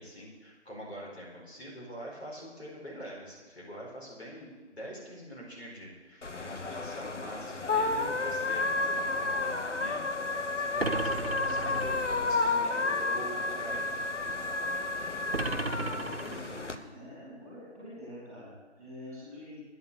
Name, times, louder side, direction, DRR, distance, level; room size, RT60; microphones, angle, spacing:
voice 1, 0.0-14.1, equal, 60° left, -4 dB, 4.7 m, -44 dB
sound 1, 6.2-16.7, left 3 dB, 85° left, 1.1 m, -31 dB
sound 2, 10.8-12.2 15.3-16.8, right 3 dB, 55° right, 0.8 m, -35 dB
voice 2, 15.6-19.6, left 1 dB, 15° right, -9 dB, 4.3 m, -47 dB
9.7 x 9.4 x 6.9 m, 1.4 s
figure-of-eight pair, 175°, 35 cm